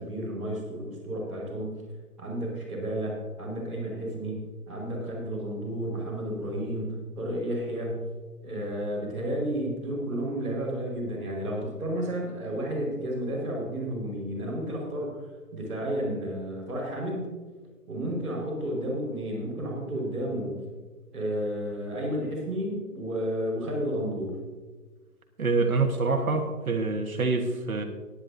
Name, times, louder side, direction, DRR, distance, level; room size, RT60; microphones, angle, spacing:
voice 1, 0.0-1.8 2.2-8.1 8.4-17.4 17.9-20.6 21.1-24.4, right 1 dB, ahead, 1.7 m, -32 dB
voice 2, 25.4-27.8, right 3 dB, 65° right, 1.5 m, -26 dB
18.0 x 10.0 x 2.7 m
hypercardioid pair, 180°, 46 cm